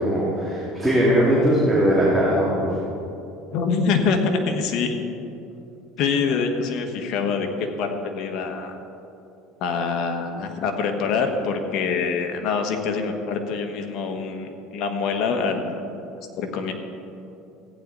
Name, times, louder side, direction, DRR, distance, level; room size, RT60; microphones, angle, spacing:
voice 1, 0.0-2.8, equal, 5° right, -7 dB, 2.4 m, -20 dB
voice 2, 3.5-5.0 6.0-8.8 9.6-15.8 16.4-16.7, left 5 dB, 60° left, 5 dB, 1.4 m, -25 dB
15.0 x 9.6 x 4.0 m, 2.7 s
supercardioid pair, 115°, 0 cm